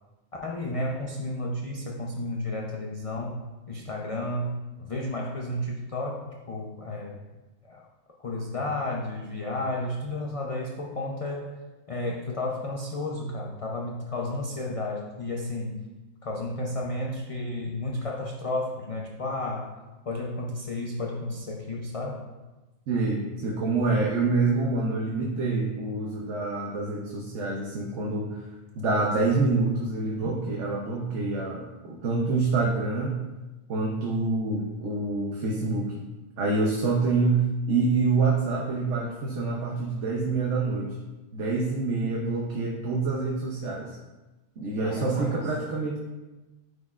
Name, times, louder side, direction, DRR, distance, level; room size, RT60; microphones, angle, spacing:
voice 1, 0.4-7.2 7.6-7.9 8.2-11.6 11.9-15.8 16.2-19.8 20.1-22.3 44.8-45.5, left 1 dB, 40° left, -1 dB, 0.5 m, -32 dB
voice 2, 22.9-28.4 28.7-33.2 33.7-36.0 36.4-40.9 41.3-44.0 44.6-46.0, right 3 dB, 85° right, -1 dB, 1.1 m, -26 dB
9.3 x 4.3 x 2.4 m, 1.1 s
omnidirectional pair, 1.2 m